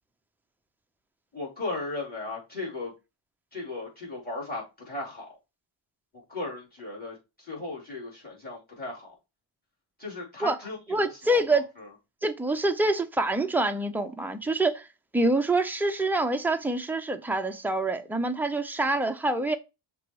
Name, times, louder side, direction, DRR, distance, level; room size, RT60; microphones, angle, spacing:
voice 1, 1.3-2.9 3.5-5.3 6.3-9.1 10.0-11.6, left 2 dB, 20° left, 3.7 m, -36 dB
voice 2, 10.9-11.6 12.2-14.9 15.1-19.6, right 2 dB, 5° right, 0.6 m, -26 dB
6.6 x 3.0 x 4.7 m
cardioid pair, 125°, 48 cm